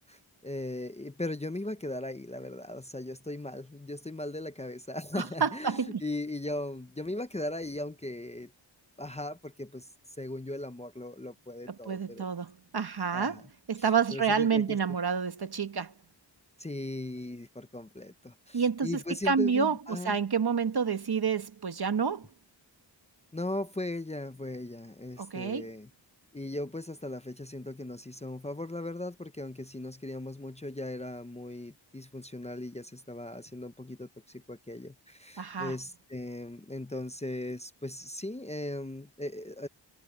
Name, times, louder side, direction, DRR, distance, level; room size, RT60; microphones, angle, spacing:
voice 1, 0.0-8.5 9.0-9.9 10.2-12.2 13.1-13.4 14.1-14.8 16.6-20.2 23.3-25.9 26.3-39.7, left 1 dB, 15° left, 0.8 m, -38 dB
voice 2, 5.1-6.0 11.7-15.9 18.5-22.3 25.2-25.7 35.4-35.8, right 6 dB, 55° right, 1.5 m, -29 dB
wide cardioid pair, 100°, 45 cm